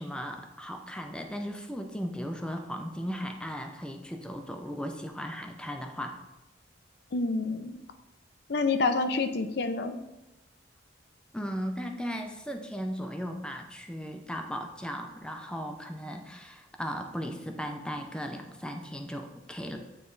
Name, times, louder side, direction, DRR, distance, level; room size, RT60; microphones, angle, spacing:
voice 1, 0.0-6.2 11.3-19.8, equal, 5° left, 4 dB, 0.5 m, -37 dB
voice 2, 7.1-7.8 8.5-10.0, left 3 dB, 55° left, 8 dB, 0.5 m, -28 dB
9.3 x 3.2 x 3.9 m, 0.95 s
head